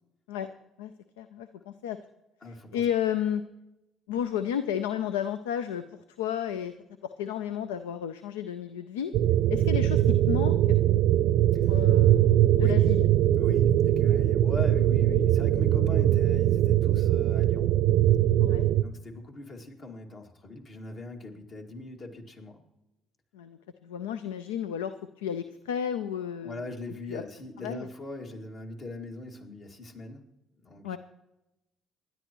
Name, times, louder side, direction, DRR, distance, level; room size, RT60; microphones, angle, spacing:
voice 1, 0.8-2.0 2.5-3.4 4.1-6.7 7.0-9.1 9.5-10.8 11.7-13.1 18.4-18.6 23.3-26.7 27.1-27.2 27.6-27.9 30.8-31.0, left 9 dB, 85° left, 11 dB, 0.4 m, -32 dB
voice 2, 2.4-2.8 11.5-11.7 12.6-12.8 13.4-17.7 18.8-22.6 26.4-30.3 30.6-31.0, left 2 dB, 50° left, 2 dB, 2.1 m, -41 dB
sound 1, 9.1-18.8, right 12 dB, 70° right, 0.5 m, -22 dB
26.5 x 11.0 x 3.0 m, 0.96 s
hypercardioid pair, 55°, 0 cm